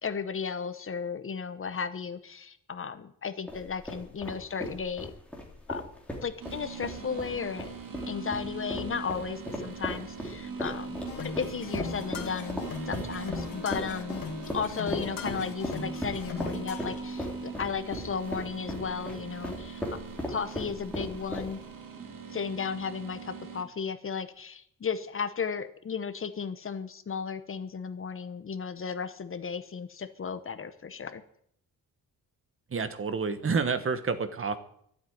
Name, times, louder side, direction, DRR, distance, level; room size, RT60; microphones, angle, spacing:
voice 1, 0.0-5.1 5.7-5.9 6.2-7.7 8.1-14.2 14.5-19.8 20.3-21.6 22.3-31.2, left 6 dB, 35° left, 11 dB, 0.9 m, -35 dB
sound 1, 3.5-21.8, left 1 dB, 5° left, 3.0 m, -38 dB
sound 2, 6.4-23.6, right 5 dB, 65° right, 2.3 m, -42 dB
sound 3, 11.1-17.0, left 5 dB, 75° left, 1.9 m, -39 dB
voice 2, 32.7-34.6, right 5 dB, 40° right, 11 dB, 1.2 m, -29 dB
13.0 x 8.3 x 9.4 m, 0.69 s
wide cardioid pair, 160°, 35 cm